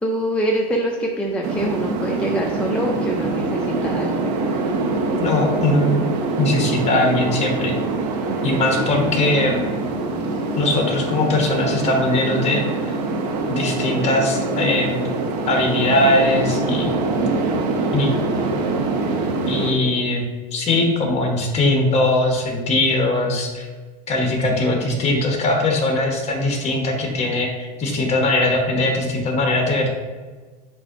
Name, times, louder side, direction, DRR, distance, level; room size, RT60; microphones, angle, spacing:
voice 1, 0.0-4.2, right 1 dB, 5° left, -1 dB, 0.4 m, -24 dB
sound 1, 1.4-19.7, right 3 dB, 70° right, 0.9 m, -24 dB
voice 2, 5.2-6.0 6.4-7.7 8.4-9.6 10.5-13.0 13.5-15.1 15.5-16.9 17.9-18.1 19.5-20.2 20.5-23.7 24.1-29.9, left 2 dB, 30° left, 1 dB, 1.1 m, -20 dB
7.8 x 2.6 x 2.6 m, 1.4 s
supercardioid pair, 115°, 21 cm